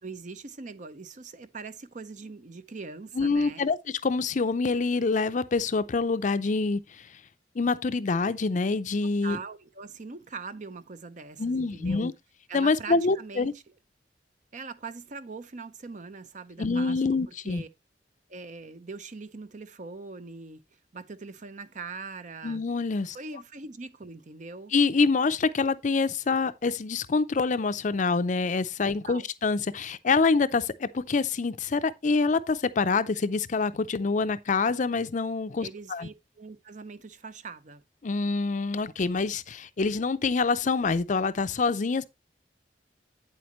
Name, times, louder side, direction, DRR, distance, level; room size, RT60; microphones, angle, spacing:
voice 1, 0.0-3.6 9.2-12.1 12.5-13.6 14.5-17.7 18.3-20.6 20.9-22.6 23.1-24.7 29.0-29.3 35.6-37.8, right 4 dB, 45° right, 0.7 m, -42 dB
voice 2, 3.2-6.8 7.6-9.4 11.4-12.1 12.5-13.5 16.6-17.6 22.4-23.2 24.7-36.1 38.0-42.0, left 4 dB, 45° left, 0.5 m, -26 dB
8.6 x 7.8 x 3.0 m
head